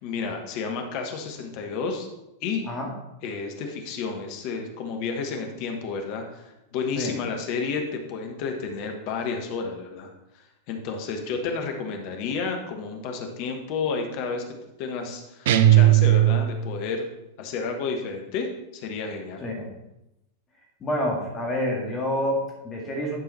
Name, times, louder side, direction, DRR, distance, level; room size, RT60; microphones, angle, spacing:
voice 1, 0.0-2.1 2.4-2.6 3.2-6.4 6.7-10.1 10.7-14.4 14.8-17.1 17.4-18.5 18.7-19.4, left 5 dB, 45° left, 4 dB, 1.2 m, -31 dB
sound 1, 15.5-16.8, right 13 dB, 55° right, 0.5 m, -17 dB
voice 2, 20.8-23.2, left 1 dB, 25° left, 0 dB, 2.1 m, -28 dB
11.0 x 4.6 x 4.2 m, 0.91 s
figure-of-eight pair, 90°, 0 cm